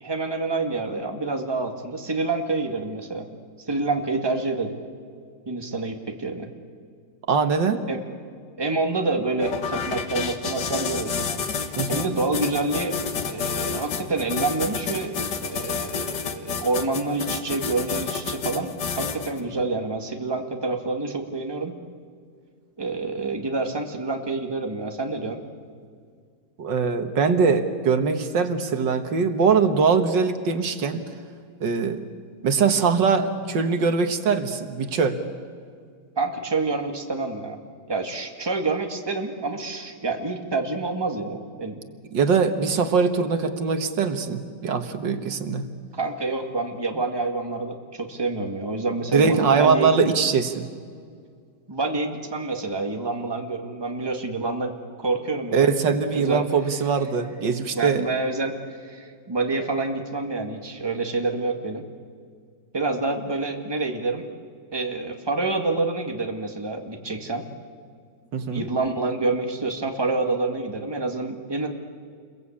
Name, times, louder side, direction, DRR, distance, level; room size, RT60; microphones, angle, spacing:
voice 1, 0.0-3.3 3.7-4.7 5.5-6.5 7.9-8.0 8.6-11.3 11.9-13.0 13.3-18.7 19.0-21.7 22.8-25.4 36.2-37.6 37.9-41.8 45.9-50.0 51.7-54.7 55.0-55.7 56.1-56.4 57.7-61.8 62.7-64.2 64.7-67.4 68.5-71.7, right 3 dB, 15° right, 3 dB, 1.9 m, -27 dB
voice 2, 7.3-7.8 11.8-12.1 26.6-31.0 31.6-32.0 32.4-35.2 42.1-45.6 49.1-50.7 55.5-58.0 68.3-68.6, right 5 dB, 80° right, 8 dB, 2.1 m, -22 dB
sound 1, 9.4-19.4, left 5 dB, 75° left, 2.1 m, -29 dB
29.0 x 22.0 x 8.6 m, 2.1 s
omnidirectional pair, 1.9 m